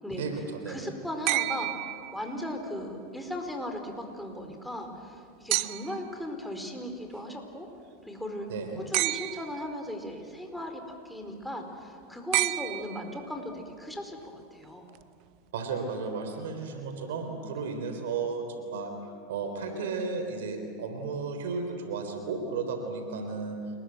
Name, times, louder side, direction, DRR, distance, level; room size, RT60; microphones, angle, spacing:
voice 1, 0.1-0.9 8.5-8.8 15.5-18.9 19.3-23.6, right 4 dB, 80° right, 6 dB, 3.7 m, -34 dB
voice 2, 0.7-1.7 2.1-7.7 8.0-8.5 8.9-14.9, left 1 dB, ahead, 3 dB, 4.7 m, -37 dB
sound 1, 1.3-2.6 5.5-6.1 8.9-9.7 12.3-13.4 15.0-15.1, right 20 dB, 55° right, 0.6 m, -30 dB
29.5 x 21.5 x 7.7 m, 2.3 s
hypercardioid pair, 105°, 0 cm